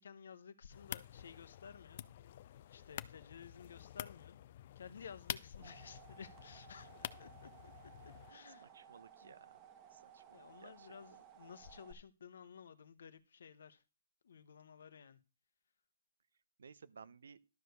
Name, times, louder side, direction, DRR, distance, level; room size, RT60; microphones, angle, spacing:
voice 1, 0.0-2.0 2.7-4.4 4.7-8.7 9.2-9.3 10.3-13.8 14.2-15.2, left 7 dB, 75° left, 1.0 m, -55 dB
sound 1, 0.7-8.3, left 12 dB, 45° left, 0.5 m, -49 dB
sound 2, 5.2-11.9, right 9 dB, 25° right, 1.4 m, -59 dB
voice 2, 8.6-9.6 9.9-11.0 16.6-17.4, right 5 dB, 85° right, 0.8 m, -58 dB
12.0 x 4.7 x 6.7 m
hypercardioid pair, 155°, 0 cm